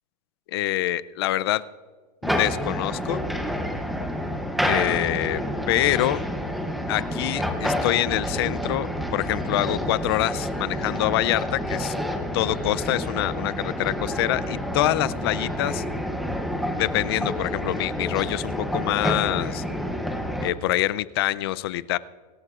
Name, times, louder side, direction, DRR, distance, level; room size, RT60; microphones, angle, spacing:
voice 1, 0.5-1.6 2.2-3.2 4.6-5.4 5.7-6.2 6.9-11.9 12.3-15.8 16.8-19.6 20.4-22.0, left 15 dB, 40° left, 18 dB, 0.4 m, -25 dB
sound 1, 2.2-20.5, equal, ahead, 0.7 m, -29 dB
24.5 x 12.5 x 2.4 m, 1.6 s
supercardioid pair, 175°, 21 cm